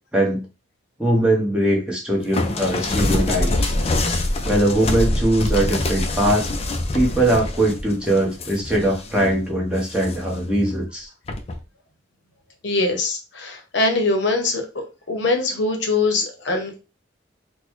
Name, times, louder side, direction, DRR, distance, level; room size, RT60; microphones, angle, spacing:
voice 1, 1.0-3.7 4.4-6.5 6.9-11.1, right 1 dB, 5° right, -3 dB, 0.9 m, -21 dB
sound 1, 2.3-9.3 9.8-10.4 11.3-11.6, left 1 dB, 30° left, 0.4 m, -24 dB
voice 2, 12.6-16.8, left 3 dB, 60° left, 4 dB, 0.8 m, -22 dB
4.0 x 2.2 x 3.0 m, 0.30 s
head